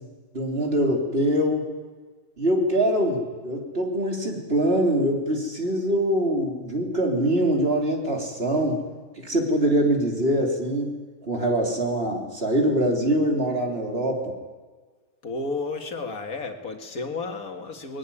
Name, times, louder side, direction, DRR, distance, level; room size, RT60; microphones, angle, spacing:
voice 1, 0.3-1.6 2.4-8.8 9.2-10.9 11.3-14.3, right 1 dB, 45° right, 1 dB, 3.5 m, -23 dB
voice 2, 15.2-18.0, left 3 dB, 85° left, 5 dB, 2.3 m, -32 dB
21.0 x 17.0 x 9.9 m, 1.5 s
omnidirectional pair, 1.5 m